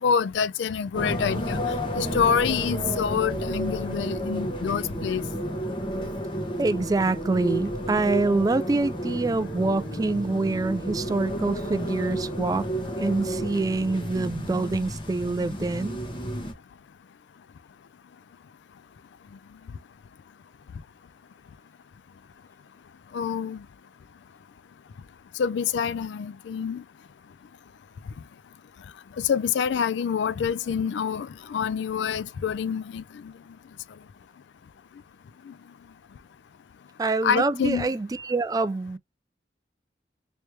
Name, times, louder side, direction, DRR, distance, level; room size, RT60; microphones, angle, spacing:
voice 1, 0.0-1.6 1.9-5.2 6.0-6.1 23.1-23.7 25.4-26.8 29.2-33.3 35.5-35.6 37.2-37.9, left 7 dB, 75° left, 0.3 m, -26 dB
sound 1, 0.9-16.5, equal, 30° left, 1.0 m, -31 dB
voice 2, 6.6-12.7 13.0-16.0 37.0-39.0, right 3 dB, 20° right, 0.3 m, -25 dB
3.1 x 3.1 x 3.1 m
head